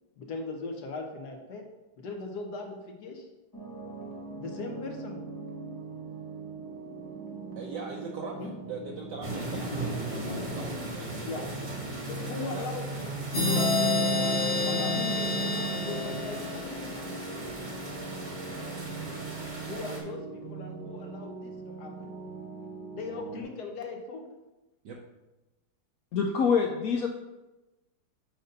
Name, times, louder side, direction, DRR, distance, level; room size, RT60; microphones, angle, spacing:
voice 1, 0.2-1.6 2.0-3.3 4.4-5.2 8.4-8.5 11.2-11.4 12.0-16.9 19.7-22.1 22.9-24.3, left 3 dB, 60° left, 2 dB, 1.3 m, -39 dB
sound 1, 3.5-23.4, right 3 dB, 25° left, 0.5 m, -41 dB
voice 2, 7.6-11.7 12.1-12.7 24.8-25.0, right 4 dB, 65° right, -1 dB, 1.3 m, -41 dB
sound 2, 9.2-20.0, right 2 dB, 25° right, 1.2 m, -38 dB
sound 3, 13.3-16.9, left 2 dB, 40° left, 1.0 m, -28 dB
voice 3, 26.1-27.1, left 6 dB, 85° left, 3 dB, 0.7 m, -25 dB
6.8 x 4.0 x 5.1 m, 1.0 s
omnidirectional pair, 2.2 m